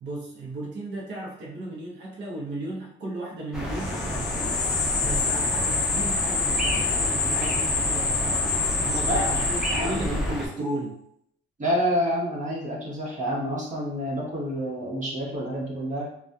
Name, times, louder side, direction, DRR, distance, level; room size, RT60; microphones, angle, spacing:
voice 1, 0.0-4.6 5.0-11.0, right 2 dB, 65° right, -3 dB, 0.7 m, -35 dB
sound 1, 3.5-10.5, equal, 5° right, 0.7 m, -30 dB
sound 2, 3.8-10.3, left 4 dB, 55° left, 0.5 m, -27 dB
voice 2, 9.0-10.2 11.6-16.0, equal, 40° right, -4 dB, 1.1 m, -28 dB
2.5 x 2.3 x 2.3 m, 0.72 s
cardioid pair, 90°, 20 cm